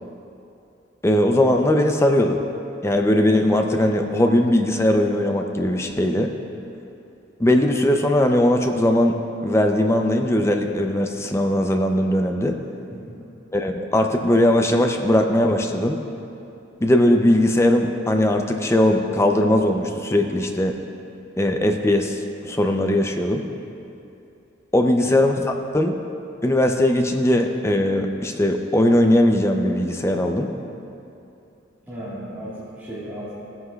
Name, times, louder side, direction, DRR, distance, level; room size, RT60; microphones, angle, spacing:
voice 1, 1.0-2.4 2.8-6.3 7.4-9.1 9.4-12.6 13.5-16.0 16.8-20.8 21.4-23.5 24.7-26.0 26.4-30.5, left 1 dB, 15° left, 4 dB, 0.5 m, -19 dB
voice 2, 24.7-25.1 31.8-33.3, equal, 10° right, -11 dB, 1.6 m, -36 dB
17.0 x 9.5 x 2.3 m, 2.7 s
head